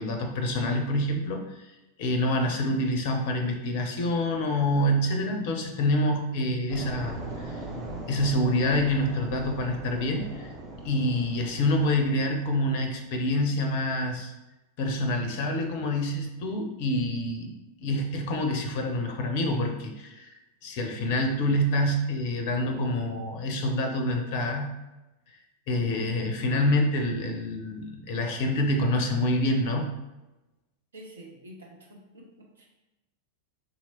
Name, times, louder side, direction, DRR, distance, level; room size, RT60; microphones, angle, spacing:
voice 1, 0.0-1.7 2.0-7.6 8.1-10.5 10.8-14.3 14.8-17.5 17.8-20.3 20.6-24.7 25.7-29.9, left 1 dB, 45° left, 4 dB, 0.5 m, -27 dB
sound 1, 6.7-13.0, right 2 dB, 25° right, 0.7 m, -40 dB
voice 2, 30.9-32.7, right 1 dB, 70° right, -1 dB, 0.8 m, -48 dB
3.9 x 2.9 x 2.8 m, 1.0 s
figure-of-eight pair, 90°, 0 cm